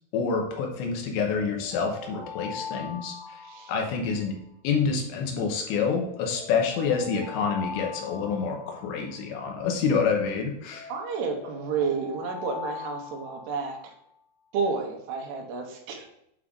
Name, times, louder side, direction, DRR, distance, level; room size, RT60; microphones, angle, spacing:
voice 1, 0.1-3.2 3.7-4.3 4.6-10.9, left 5 dB, 85° left, 2 dB, 3.4 m, -27 dB
Alarm, 1.2-4.5 5.7-9.5 10.7-14.0, left 5 dB, 65° left, 2.6 m, -42 dB
voice 2, 10.9-13.9 14.5-16.1, right 5 dB, 75° right, 2 dB, 2.9 m, -31 dB
8.3 x 3.7 x 3.7 m, 0.78 s
omnidirectional pair, 5.1 m